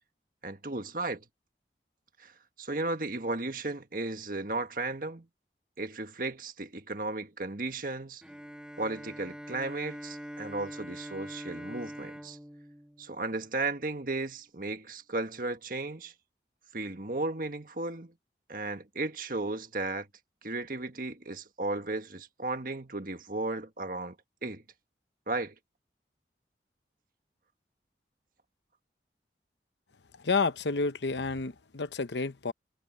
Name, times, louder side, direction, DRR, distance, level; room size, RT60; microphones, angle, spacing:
voice 1, 0.4-1.2 2.2-2.3 2.6-5.3 5.8-8.2 8.8-12.4 13.0-16.1 16.7-18.1 18.5-20.1 20.4-24.1 24.4-24.6 25.3-25.5, right 2 dB, 50° right, 1.7 m, -35 dB
Bowed string instrument, 8.2-13.9, equal, 5° right, 1.8 m, -44 dB
voice 2, 30.2-32.5, left 4 dB, 85° left, 0.9 m, -30 dB
head